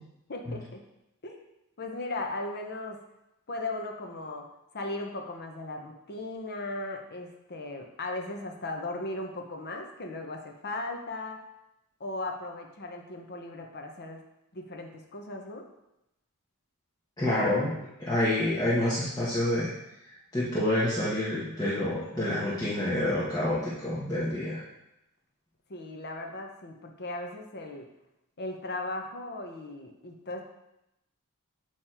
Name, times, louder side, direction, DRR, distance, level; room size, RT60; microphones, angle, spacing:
voice 1, 0.3-0.9 1.2-1.5 1.8-3.0 3.5-4.5 4.7-11.4 12.0-14.2 14.5-15.7 25.7-27.9 28.4-30.4, left 2 dB, 50° left, 2 dB, 0.9 m, -37 dB
voice 2, 17.2-17.7 18.0-19.7 20.0-24.6, left 1 dB, 15° left, -11 dB, 1.3 m, -28 dB
8.7 x 3.2 x 4.4 m, 0.89 s
head